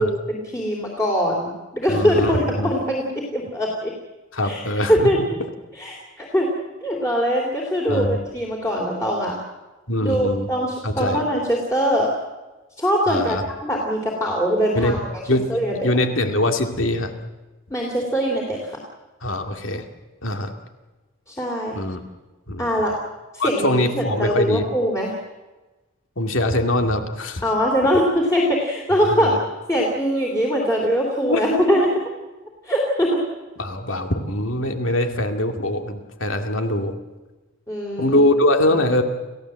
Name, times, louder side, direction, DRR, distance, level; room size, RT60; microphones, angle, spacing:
voice 1, 0.0-3.0 3.3-3.9 4.4-4.6 4.9-5.2 5.7-6.5 6.8-9.3 10.0-12.1 12.8-15.0 15.5-15.7 17.7-18.8 21.3-21.8 22.6-22.9 23.3-25.1 27.4-29.3 29.7-31.9 32.6-33.2 37.7-38.2, equal, 15° left, -2 dB, 3.2 m, -22 dB
voice 2, 1.9-2.7 4.3-5.1 7.9-8.2 9.9-10.5 10.8-11.2 13.1-13.4 14.7-15.0 15.3-15.5 15.8-17.1 19.2-19.9 20.2-20.5 21.7-22.0 22.5-22.6 23.4-24.6 26.2-27.4 29.1-29.4 31.3-31.8 33.6-37.0 38.0-39.0, left 1 dB, 70° left, 5 dB, 2.3 m, -22 dB
29.0 x 16.0 x 7.7 m, 1.2 s
head